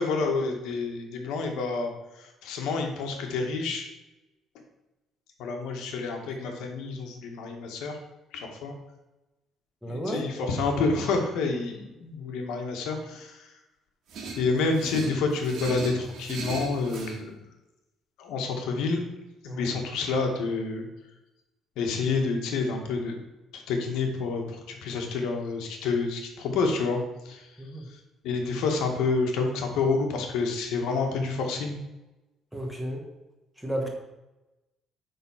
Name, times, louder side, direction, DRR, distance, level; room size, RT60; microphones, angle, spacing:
voice 1, 0.0-1.9 2.2-3.8 5.4-8.0 8.3-8.7 9.8-13.5 14.4-17.4 18.2-19.0 19.4-20.9 21.8-23.2 23.5-27.5 28.2-31.8, left 4 dB, 75° left, 3 dB, 1.5 m, -28 dB
voice 2, 9.8-10.2 19.5-19.7 27.6-27.9 32.5-33.0 33.6-33.9, equal, 5° right, 1 dB, 1.1 m, -32 dB
sound 1, 14.1-17.2, right 3 dB, 55° right, 1.7 m, -37 dB
9.3 x 3.8 x 5.6 m, 1.0 s
cardioid pair, 180°, 0 cm